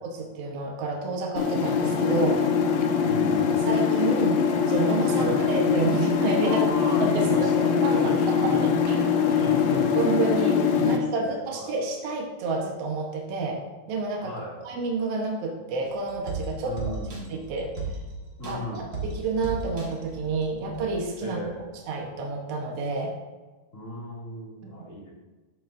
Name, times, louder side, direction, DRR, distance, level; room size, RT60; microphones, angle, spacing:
voice 1, 0.0-2.4 3.6-4.4 4.7-6.6 7.0-7.9 8.4-9.1 10.0-13.6 13.9-16.9 17.3-17.7 18.5-21.4 21.9-23.1, right 3 dB, 75° right, 0 dB, 1.4 m, -29 dB
sound 1, 1.4-11.0, left 6 dB, 75° left, 2.1 m, -23 dB
voice 2, 3.0-3.7 5.1-5.4 6.4-8.6 9.3-9.9 10.8-11.7 14.2-14.7 16.6-17.1 18.4-18.9 21.2-21.7 23.7-25.1, left 1 dB, 25° left, -5 dB, 2.0 m, -36 dB
sound 2, 15.9-21.0 21.4-21.5, right 3 dB, 40° right, 1.4 m, -36 dB
13.0 x 7.1 x 2.6 m, 1.2 s
omnidirectional pair, 4.3 m